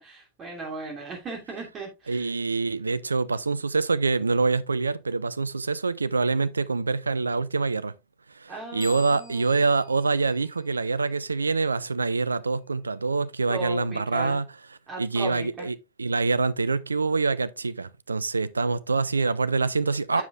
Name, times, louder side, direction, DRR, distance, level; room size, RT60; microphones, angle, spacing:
voice 1, 0.0-2.3 8.5-9.7 13.5-14.4 14.9-15.7 20.1-20.2, right 2 dB, 25° right, 2.8 m, -37 dB
voice 2, 2.1-7.9 8.4-14.5 15.0-20.2, right 4 dB, 75° right, 0.4 m, -25 dB
sound 1, 8.8-11.3, left 4 dB, 5° left, 2.4 m, -48 dB
8.2 x 6.9 x 2.4 m
figure-of-eight pair, 90°, 0 cm